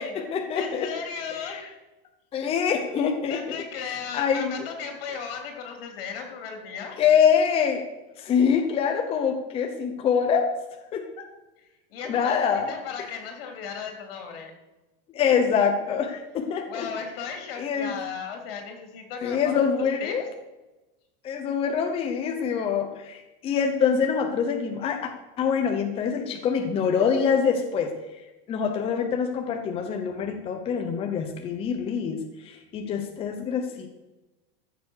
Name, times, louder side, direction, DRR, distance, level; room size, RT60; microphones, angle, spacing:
voice 1, 0.0-0.9 1.4-1.6 2.3-4.7 7.0-7.8 8.2-10.5 10.9-11.3 12.0-12.7 15.1-16.9 17.6-17.9 19.2-20.3 21.2-25.1 25.4-27.9 28.5-33.9, left 7 dB, 20° left, 5 dB, 0.8 m, -25 dB
voice 2, 0.5-1.7 3.2-7.0 11.6-14.5 16.6-19.6 20.0-20.2, left 6 dB, 75° left, 4 dB, 3.7 m, -36 dB
15.0 x 7.3 x 6.5 m, 1.0 s
supercardioid pair, 175°, 30 cm